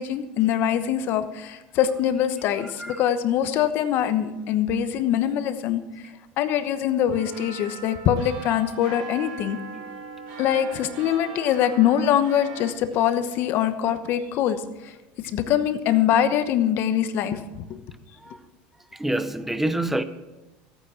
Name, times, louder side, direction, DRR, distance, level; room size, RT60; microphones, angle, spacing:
voice 1, 0.0-5.8 6.4-9.6 10.4-14.9 15.2-17.8, left 10 dB, 50° left, 1.1 m, -23 dB
sound 1, 7.1-12.7, right 5 dB, 75° right, 4.7 m, -40 dB
voice 2, 18.9-20.0, right 1 dB, 5° right, 0.7 m, -26 dB
14.0 x 9.1 x 6.0 m
supercardioid pair, 135°, 5 cm